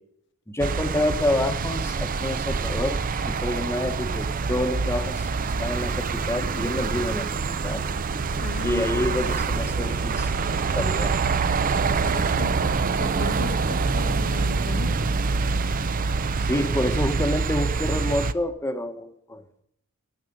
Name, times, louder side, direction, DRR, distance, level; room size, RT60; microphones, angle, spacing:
voice 1, 0.5-3.0 3.2-5.3 5.6-7.3 7.6-7.9 8.6-10.4 10.7-11.2 16.4-19.4, left 1 dB, 10° left, 1.0 m, -28 dB
sound 1, 0.6-18.3, right 4 dB, 40° right, 0.5 m, -25 dB
voice 2, 8.4-8.9 11.9-15.1, left 6 dB, 55° left, 0.4 m, -37 dB
13.0 x 6.5 x 9.9 m
head